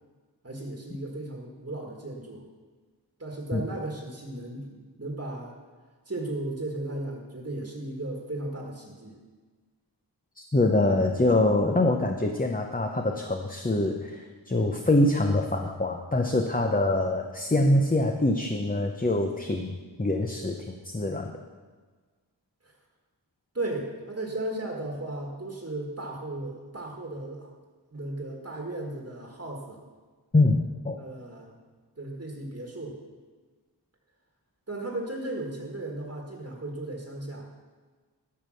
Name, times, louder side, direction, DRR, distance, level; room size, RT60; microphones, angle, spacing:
voice 1, 0.4-2.4 3.2-5.6 6.1-9.2 22.6-22.7 23.5-27.5 27.9-29.8 30.9-31.6 32.0-33.0 34.7-37.5, right 2 dB, 35° right, 0 dB, 1.5 m, -35 dB
voice 2, 10.4-21.3 30.3-31.0, left 2 dB, 20° left, 3 dB, 0.7 m, -24 dB
13.5 x 5.2 x 6.3 m, 1.4 s
wide cardioid pair, 45°, 44 cm